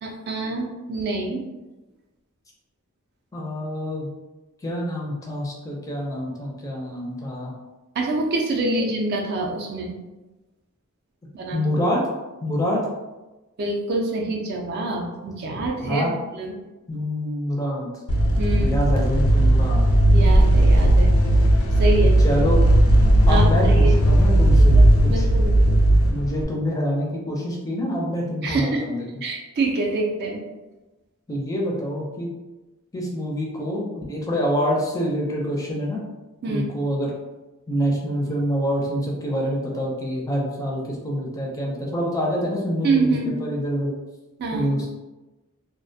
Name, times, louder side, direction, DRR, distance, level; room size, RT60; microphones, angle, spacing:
voice 1, 0.0-1.4 7.9-9.9 11.3-11.6 13.6-16.5 18.4-18.7 20.1-21.1 21.8-22.2 23.3-24.0 24.7-24.8 25.1-25.8 28.4-28.8 29.2-30.4 36.4-36.6 42.8-43.3 44.4-44.7, right 2 dB, 50° right, 0 dB, 0.4 m, -26 dB
voice 2, 3.3-4.1 4.6-7.5 11.5-12.0 12.4-12.9 15.9-16.1 16.9-17.9 18.6-19.9 22.2-22.6 23.3-24.8 25.0-25.3 25.9-29.1 31.3-32.3 32.9-36.0 36.5-37.1 37.7-43.9 44.5-44.9, equal, 15° left, -2 dB, 0.4 m, -26 dB
sound 1, 18.1-26.4, right 1 dB, 80° left, 0.4 m, -16 dB
2.3 x 2.1 x 2.6 m, 1.1 s
head